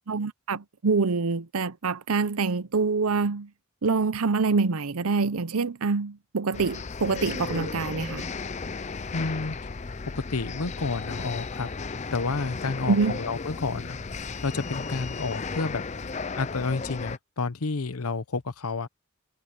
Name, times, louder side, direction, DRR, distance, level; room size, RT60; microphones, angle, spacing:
voice 1, 0.1-3.5 3.8-8.3 12.9-13.2, right 4 dB, 85° right, 0.8 m, -26 dB
sound 1, 6.5-17.2, left 4 dB, 30° left, 0.5 m, -35 dB
voice 2, 9.1-9.5 10.1-11.7 12.1-14.0 14.4-15.8 16.4-18.9, left 3 dB, 85° left, 0.9 m, -30 dB
head